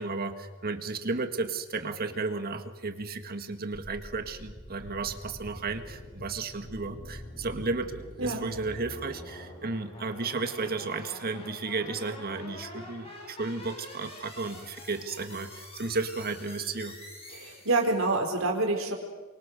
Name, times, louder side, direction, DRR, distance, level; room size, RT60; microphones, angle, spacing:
voice 1, 0.0-17.0, right 3 dB, 50° right, 7 dB, 1.9 m, -33 dB
sound 1, 3.8-18.1, left 1 dB, 30° left, 7.3 m, -46 dB
voice 2, 17.3-18.9, right 2 dB, 75° right, 2 dB, 4.5 m, -27 dB
28.5 x 24.5 x 6.7 m, 1.3 s
head